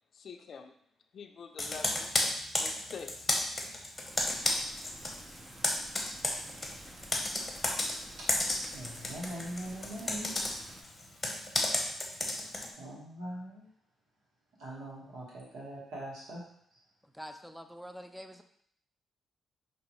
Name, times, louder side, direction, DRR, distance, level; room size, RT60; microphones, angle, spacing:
voice 1, 0.1-0.7 1.1-2.2 2.6-3.3, left 5 dB, 60° left, 6 dB, 0.4 m, -46 dB
Computer keyboard, 1.6-5.2 5.4-12.7, left 2 dB, 25° left, 0.9 m, -32 dB
sound 1, 4.1-10.8, right 1 dB, 25° right, 0.8 m, -51 dB
voice 2, 8.7-10.3 12.8-13.7 14.6-16.4, right 1 dB, 85° right, -5 dB, 1.6 m, -42 dB
voice 3, 17.1-18.4, equal, ahead, 6 dB, 0.4 m, -45 dB
5.3 x 2.9 x 3.1 m, 0.67 s
cardioid pair, 80°, 0 cm